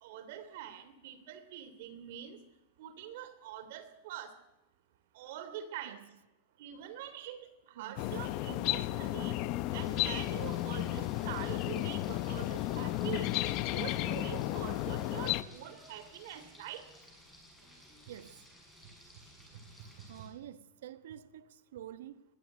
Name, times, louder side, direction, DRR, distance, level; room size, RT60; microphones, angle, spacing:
voice 1, 0.0-2.4 2.8-4.3 5.1-6.0 6.6-7.4 7.7-9.3 9.7-13.3 13.7-16.8, right 10 dB, 60° right, 2.9 m, -44 dB
voice 2, 7.8-8.1 18.1-18.5 19.8-22.2, right 11 dB, 85° right, 1.4 m, -49 dB
sound 1, 8.0-15.4, left 15 dB, 40° left, 0.8 m, -33 dB
Frying (food), 9.7-20.3, equal, ahead, 7.2 m, -57 dB
21.5 x 15.0 x 9.2 m
supercardioid pair, 160°, 0 cm